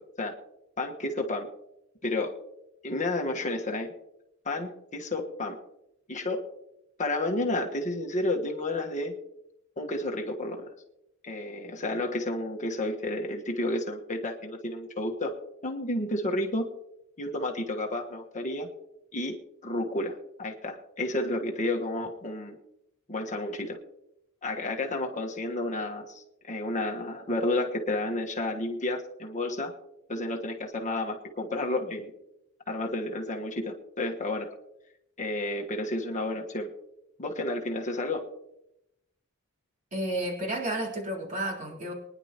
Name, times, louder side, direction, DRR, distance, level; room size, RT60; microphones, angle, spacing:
voice 1, 0.8-1.5 2.0-2.4 2.8-3.9 4.4-5.6 6.1-6.4 7.0-9.1 9.8-10.6 11.2-15.3 15.6-16.7 17.2-18.7 19.1-19.4 19.6-22.5 23.1-23.8 24.4-29.7 30.1-32.1 32.7-34.5 35.2-36.7 37.2-38.2, left 2 dB, 35° left, 2 dB, 1.3 m, -31 dB
voice 2, 39.9-41.9, right 1 dB, 35° right, -2 dB, 3.5 m, -31 dB
23.5 x 10.5 x 2.9 m, 0.85 s
head